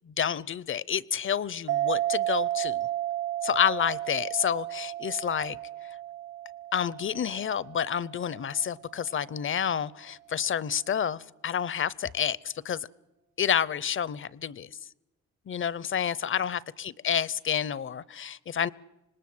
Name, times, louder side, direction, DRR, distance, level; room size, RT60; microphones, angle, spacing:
voice 1, 0.1-2.9 3.4-5.6 6.7-12.9 13.4-14.7 15.5-18.7, left 8 dB, 40° left, 22 dB, 0.7 m, -29 dB
sound 1, 1.7-8.7, right 13 dB, 50° right, 0.8 m, -33 dB
26.0 x 19.5 x 7.8 m, 0.99 s
cardioid pair, 90°, 30 cm